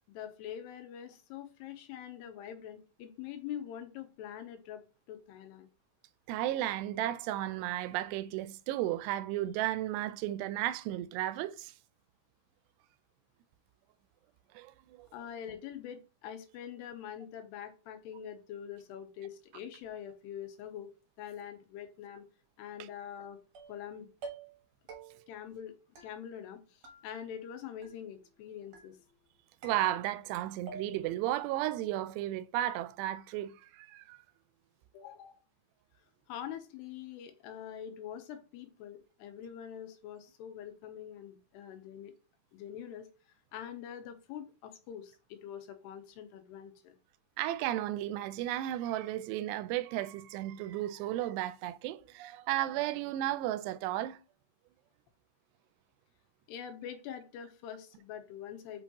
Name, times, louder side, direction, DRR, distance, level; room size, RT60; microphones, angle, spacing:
voice 1, 0.1-4.8 5.1-5.7 15.1-20.9 21.2-22.3 22.6-23.4 23.7-24.1 25.3-25.8 26.0-29.0 34.9-35.4 36.3-42.1 42.5-43.1 43.5-47.0 56.5-58.8, left 9 dB, 80° left, 2.9 m, -44 dB
voice 2, 6.3-11.7 14.5-15.1 29.6-34.2 47.4-54.2, right 14 dB, 85° right, 2.7 m, -34 dB
sound 1, 23.5-23.9 24.2-24.6 24.9-25.4 26.0-26.6 26.8-27.5 27.8-28.3 28.7-29.2 29.6-30.3 30.7-31.2, right 4 dB, 55° right, 2.0 m, -50 dB
7.0 x 5.4 x 2.9 m
omnidirectional pair, 4.8 m